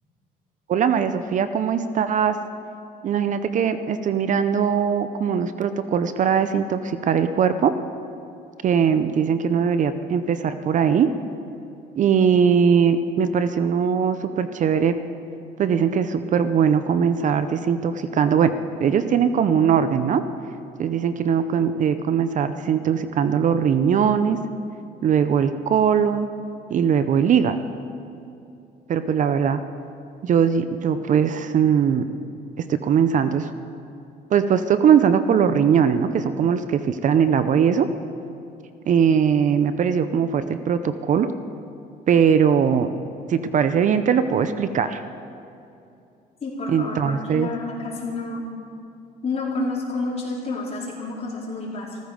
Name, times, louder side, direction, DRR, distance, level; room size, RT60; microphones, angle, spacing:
voice 1, 0.7-2.4 3.0-7.7 8.6-11.1 12.0-15.0 15.6-18.5 18.8-20.2 20.8-24.4 25.0-26.3 26.7-27.6 28.9-29.6 30.2-32.1 32.6-33.5 34.3-37.9 38.9-41.3 42.1-42.9 43.3-45.0 46.7-47.5, right 7 dB, 50° right, 11 dB, 0.6 m, -20 dB
voice 2, 46.4-48.4 49.2-52.0, left 3 dB, 40° left, -5 dB, 4.4 m, -29 dB
15.0 x 14.5 x 5.1 m, 2.7 s
cardioid pair, 110°, 17 cm